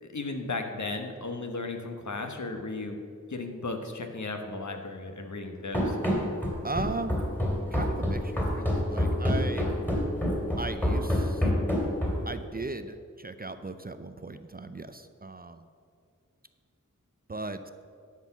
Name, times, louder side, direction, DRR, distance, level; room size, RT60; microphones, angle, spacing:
voice 1, 0.0-3.0 3.3-6.0, left 3 dB, 60° left, 4 dB, 1.1 m, -35 dB
Run, 5.7-12.4, equal, 5° left, 2.4 m, -27 dB
voice 2, 6.6-7.2 7.7-9.7 10.6-11.4 12.3-15.6 17.3-17.7, right 3 dB, 30° right, 10 dB, 0.4 m, -37 dB
11.5 x 4.5 x 7.1 m, 2.3 s
wide cardioid pair, 60°, 32 cm